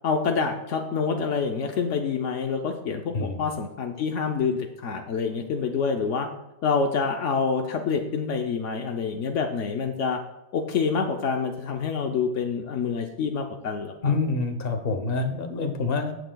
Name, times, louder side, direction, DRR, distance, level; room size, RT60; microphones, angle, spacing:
voice 1, 0.0-6.3 6.6-10.2 10.5-14.1, left 5 dB, 80° left, 4 dB, 1.1 m, -27 dB
voice 2, 14.0-16.1, left 3 dB, 55° left, 7 dB, 1.2 m, -26 dB
14.0 x 8.2 x 2.3 m, 0.95 s
omnidirectional pair, 1.2 m